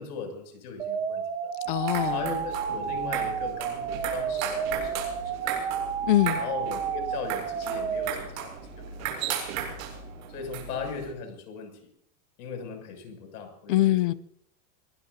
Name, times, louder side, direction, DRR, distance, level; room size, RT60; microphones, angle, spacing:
voice 1, 0.0-1.5 2.1-5.8 6.4-9.4 10.3-11.9 12.4-14.2, left 5 dB, 75° left, 5 dB, 6.9 m, -38 dB
sound 1, 0.8-8.1, right 7 dB, 10° right, 0.7 m, -31 dB
sound 2, 1.6-11.1, right 7 dB, 55° right, 7.2 m, -36 dB
voice 2, 1.7-2.2 6.1-6.4 13.7-14.1, left 15 dB, 35° left, 17 dB, 0.5 m, -23 dB
25.5 x 19.0 x 2.7 m, 0.66 s
supercardioid pair, 180°, 47 cm